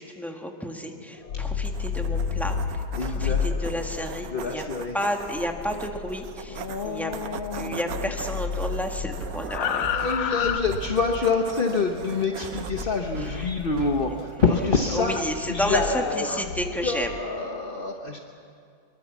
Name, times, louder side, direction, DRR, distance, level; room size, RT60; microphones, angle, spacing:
voice 1, 0.0-4.6 4.9-7.1 7.5-9.8 13.4-13.5 14.9-17.1, equal, ahead, 2 dB, 1.5 m, -31 dB
sound 1, 1.1-7.6 7.9-11.3 12.7-13.9 14.6-17.2, left 7 dB, 85° left, 1.9 m, -31 dB
sound 2, 1.6-14.4, right 9 dB, 65° right, 0.9 m, -41 dB
voice 2, 3.0-3.6 4.3-5.0 6.5-8.1 9.6-15.2 15.5-16.3 16.8-18.2, left 4 dB, 40° left, 3 dB, 0.8 m, -27 dB
sound 3, 9.2-15.8, right 5 dB, 45° right, 1.5 m, -41 dB
23.5 x 22.5 x 7.2 m, 2.5 s
omnidirectional pair, 2.2 m